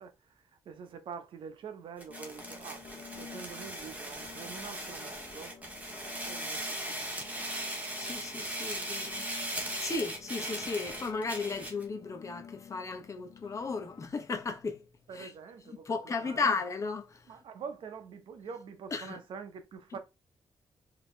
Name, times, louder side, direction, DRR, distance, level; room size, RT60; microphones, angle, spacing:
voice 1, 0.0-5.5 6.2-7.5 15.1-16.5 17.3-20.0, right 6 dB, 75° right, 0.9 m, -46 dB
sound 1, 2.0-11.8, right 1 dB, 15° right, 1.5 m, -39 dB
sound 2, 2.1-14.1, left 7 dB, 80° left, 0.9 m, -52 dB
voice 2, 8.0-9.3 9.6-14.8 15.2-15.3 15.9-17.2 18.9-19.2, left 4 dB, 35° left, 0.9 m, -35 dB
5.0 x 2.9 x 3.2 m
cardioid pair, 115°, 9 cm